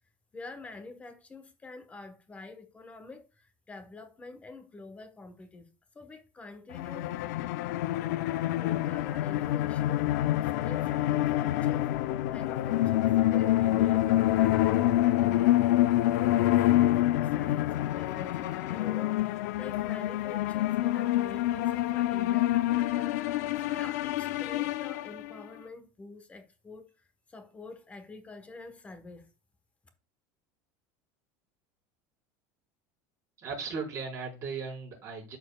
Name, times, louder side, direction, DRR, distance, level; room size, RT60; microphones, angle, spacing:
voice 1, 0.3-5.7 5.9-7.2 8.3-11.9 12.3-15.6 16.0-29.3, left 3 dB, 15° left, 1.1 m, -47 dB
sound 1, 6.7-25.5, left 14 dB, 80° left, 0.5 m, -27 dB
voice 2, 33.4-35.4, right 5 dB, 35° right, 4.6 m, -37 dB
12.5 x 4.5 x 2.3 m
supercardioid pair, 145°, 9 cm